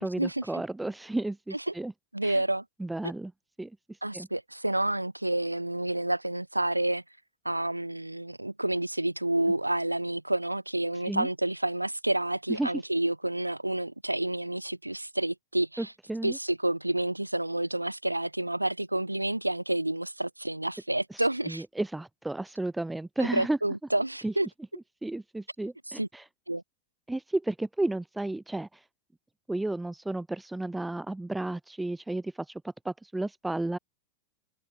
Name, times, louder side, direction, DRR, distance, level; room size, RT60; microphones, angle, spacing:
voice 1, 0.0-1.9 2.2-2.4 2.8-3.3 3.6-4.3 11.0-11.3 12.5-12.7 15.8-16.4 21.1-23.6 24.2-24.3 25.0-26.3 27.1-28.9 29.5-33.8, right 2 dB, 5° right, 6.0 m, -33 dB
voice 2, 2.1-2.6 4.0-7.0 7.4-15.9 16.2-21.6 23.3-24.5 25.9-26.1 26.5-26.6, right 1 dB, 85° right, 4.0 m, -29 dB
figure-of-eight pair, 90°, 0 cm